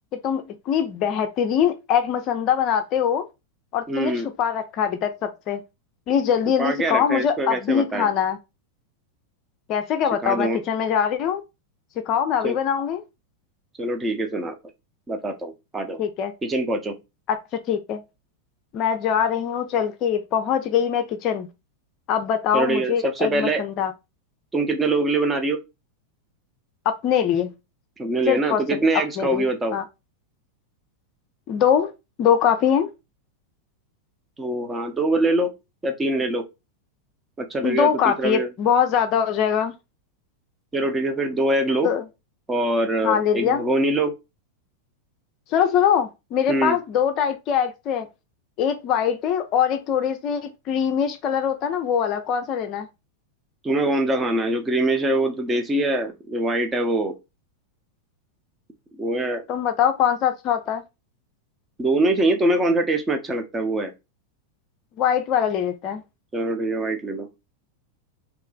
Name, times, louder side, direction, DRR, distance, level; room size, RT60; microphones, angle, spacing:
voice 1, 0.1-3.3 3.7-5.6 6.1-8.4 9.7-11.4 12.1-13.0 16.0-16.3 17.3-17.4 17.7-18.0 18.7-21.5 22.1-23.9 26.9-27.5 28.3-28.6 29.2-29.5 29.7-29.8 31.5-31.9 32.2-32.9 37.6-39.7 41.8-42.0 43.0-43.6 45.5-48.1 48.6-52.9 59.5-60.8 65.0-66.0, left 8 dB, 35° left, 0.5 m, -22 dB
voice 2, 3.9-4.3 6.6-8.1 10.2-10.6 12.4-12.6 13.8-14.5 15.1-16.0 16.4-16.9 22.5-23.6 24.5-25.6 28.0-29.8 34.4-35.5 35.8-36.4 37.4-38.5 40.7-41.9 42.5-44.1 46.5-46.8 53.6-57.1 59.0-59.4 61.8-63.9 66.3-67.3, right 2 dB, 15° right, 0.9 m, -23 dB
3.1 x 3.0 x 3.8 m
figure-of-eight pair, 90°, 0 cm